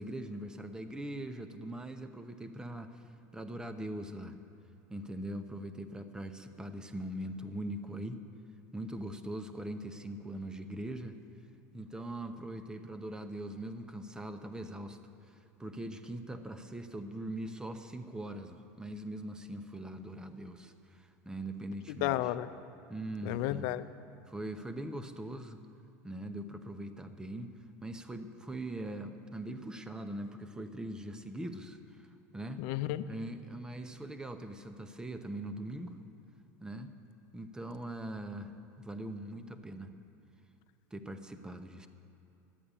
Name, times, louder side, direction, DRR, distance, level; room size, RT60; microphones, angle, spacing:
voice 1, 0.0-3.0 3.3-4.4 4.9-8.2 8.7-11.2 11.7-15.0 15.2-22.3 22.9-23.7 24.3-25.6 26.0-27.5 27.8-32.1 32.3-32.7 33.1-36.0 36.6-36.9 37.3-39.9 40.9-41.9, right 1 dB, 10° right, 8 dB, 0.8 m, -41 dB
voice 2, 21.9-22.5 23.3-23.8 32.6-33.0, left 15 dB, 65° left, 12 dB, 0.6 m, -32 dB
12.5 x 8.7 x 9.9 m, 2.8 s
supercardioid pair, 120°, 8 cm